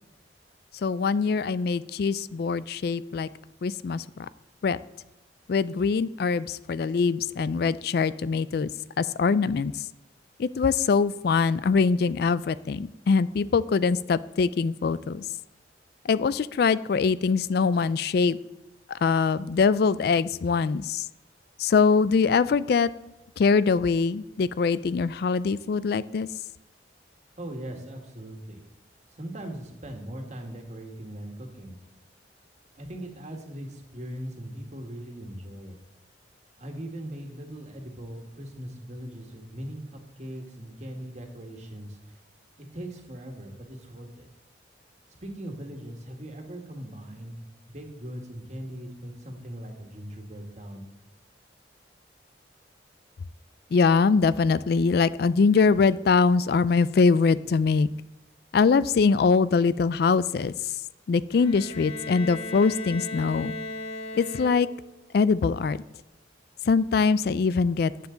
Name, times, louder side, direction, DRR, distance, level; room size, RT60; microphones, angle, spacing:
voice 1, 0.8-3.3 3.6-4.3 4.6-4.8 5.5-8.7 9.0-9.9 10.4-15.2 16.0-18.4 18.9-21.1 21.6-22.9 23.4-26.3 53.7-57.9 58.5-60.5 61.1-63.5 64.1-64.7 65.1-65.8 66.7-68.1, left 5 dB, 60° left, 17 dB, 0.3 m, -23 dB
voice 2, 27.4-28.6 29.1-31.8 32.8-35.8 36.6-42.0 42.7-44.3 45.2-47.4 47.7-50.8, right 1 dB, 40° right, 3 dB, 1.8 m, -40 dB
Bowed string instrument, 61.3-65.0, left 2 dB, 35° left, 1.1 m, -37 dB
14.0 x 9.4 x 3.9 m, 0.95 s
head